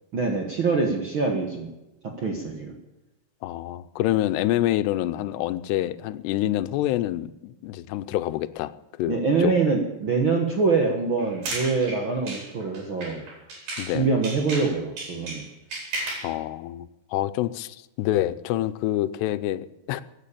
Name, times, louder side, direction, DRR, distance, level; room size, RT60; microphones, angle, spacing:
voice 1, 0.1-1.7 2.2-2.7 9.1-13.2 13.9-15.4, right 4 dB, 55° right, 2 dB, 1.4 m, -24 dB
voice 2, 3.4-8.7 9.0-9.2 9.4-9.5 13.8-14.1 16.2-20.0, left 14 dB, 90° left, 13 dB, 2.8 m, -27 dB
sound 1, 11.2-14.0 14.2-16.3, right 2 dB, 70° right, 6.3 m, -34 dB
16.0 x 9.5 x 8.5 m, 1.0 s
omnidirectional pair, 4.7 m